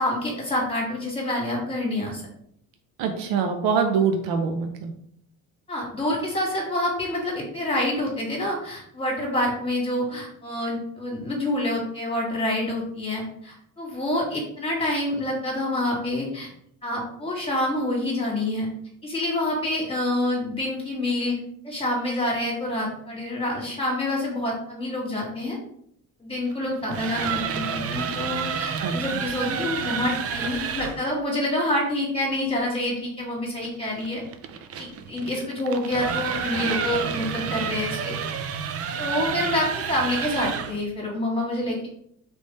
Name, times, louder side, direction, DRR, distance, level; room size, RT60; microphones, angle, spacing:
voice 1, 0.0-2.2 5.7-16.5 16.8-18.7 19.0-21.3 21.6-25.6 26.2-34.2 34.8-38.2 39.0-41.9, left 1 dB, 15° left, -3 dB, 1.7 m, -27 dB
voice 2, 3.0-4.9 28.8-29.2, right 6 dB, 80° right, 5 dB, 0.7 m, -24 dB
sound 1, 26.7-31.0 33.6-40.8, right 7 dB, 45° right, 0.4 m, -30 dB
3.4 x 3.2 x 4.1 m, 0.69 s
cardioid pair, 115°, 36 cm